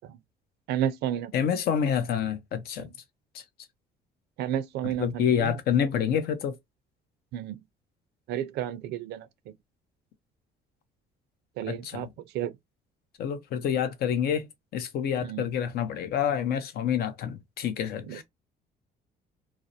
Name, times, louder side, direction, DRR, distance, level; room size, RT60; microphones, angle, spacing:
voice 1, 0.7-1.3 2.8-2.9 4.4-5.5 7.3-7.6 8.3-9.3 11.6-12.1 12.3-12.5 15.2-15.5 18.1-18.2, right 10 dB, 75° right, 0.5 m, -31 dB
voice 2, 1.3-2.9 3.3-3.4 4.8-6.6 11.7-12.1 13.2-14.5 14.7-18.2, left 8 dB, 65° left, 0.6 m, -28 dB
2.4 x 2.0 x 2.6 m
cardioid pair, 110°, 17 cm